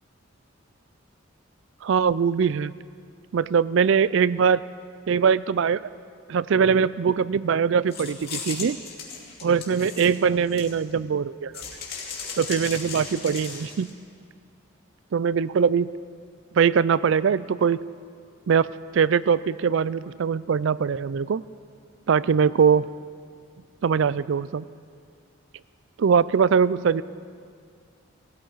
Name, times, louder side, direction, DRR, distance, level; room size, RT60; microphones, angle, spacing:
voice 1, 1.8-2.7 3.3-4.6 5.1-5.9 6.3-8.8 9.4-11.6 12.4-13.9 15.1-15.9 16.6-17.8 18.5-21.4 22.1-22.9 23.8-24.7 26.0-27.0, right 6 dB, 65° right, 18 dB, 0.4 m, -22 dB
sound 1, 7.9-11.0 11.5-13.9, left 6 dB, 45° left, 2.6 m, -36 dB
19.0 x 16.5 x 4.6 m, 2.2 s
head